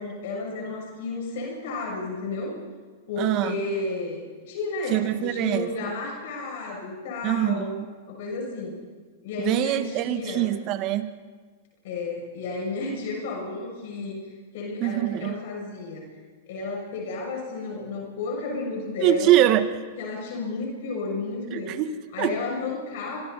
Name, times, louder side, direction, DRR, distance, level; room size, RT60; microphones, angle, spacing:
voice 1, 0.0-2.5 3.1-7.7 8.1-8.8 9.2-10.5 11.8-14.2 14.5-16.1 16.5-19.4 20.0-21.8 22.1-23.2, left 3 dB, 65° left, -1 dB, 6.9 m, -32 dB
voice 2, 3.2-3.5 4.9-5.7 7.2-7.9 9.4-11.1 14.8-15.3 19.0-19.7 21.5-22.4, right 13 dB, 45° right, 10 dB, 1.6 m, -23 dB
29.5 x 24.0 x 4.2 m, 1.5 s
hypercardioid pair, 120°, 0 cm